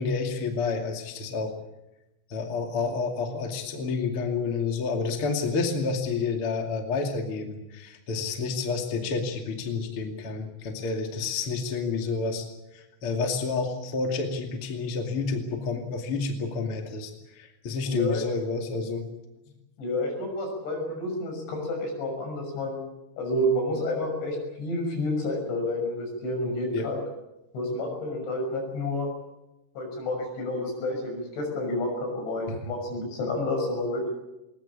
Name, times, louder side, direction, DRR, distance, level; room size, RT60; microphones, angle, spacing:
voice 1, 0.0-1.5 2.3-12.5 12.7-19.1 26.7-26.9 32.5-32.7, left 4 dB, 35° left, 3 dB, 2.6 m, -29 dB
voice 2, 17.9-18.2 19.8-22.9 23.2-27.0 27.5-29.1 29.8-34.1, left 1 dB, 75° left, 3 dB, 8.6 m, -29 dB
20.5 x 20.0 x 8.7 m, 0.95 s
omnidirectional pair, 5.4 m